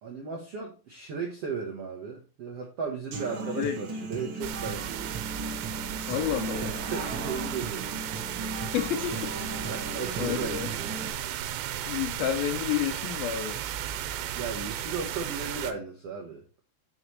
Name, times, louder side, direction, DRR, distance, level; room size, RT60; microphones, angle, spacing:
voice 1, 0.0-5.1 6.5-7.9 9.6-10.9 14.3-16.4, right 5 dB, 70° right, 1.4 m, -36 dB
Human voice / Acoustic guitar, 3.1-11.1, right 3 dB, 45° right, 1.6 m, -36 dB
sound 1, 4.4-15.7, right 11 dB, 90° right, 3.1 m, -35 dB
voice 2, 6.1-6.8 8.6-9.7 10.2-10.7 11.9-13.6, left 11 dB, 80° left, 2.2 m, -30 dB
8.5 x 5.9 x 4.4 m
omnidirectional pair, 4.9 m